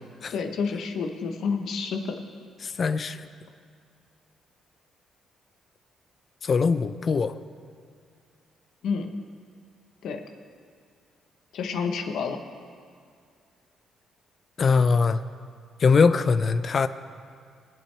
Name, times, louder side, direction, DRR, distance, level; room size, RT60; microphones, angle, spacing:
voice 1, 0.3-2.2 8.8-9.1 10.0-10.2 11.5-12.4, left 5 dB, 75° left, 5 dB, 1.0 m, -29 dB
voice 2, 2.6-3.3 6.4-7.3 14.6-15.2 15.8-16.9, left 5 dB, 45° left, 12 dB, 0.5 m, -22 dB
20.0 x 8.5 x 3.3 m, 2.2 s
cardioid pair, 90°, 0 cm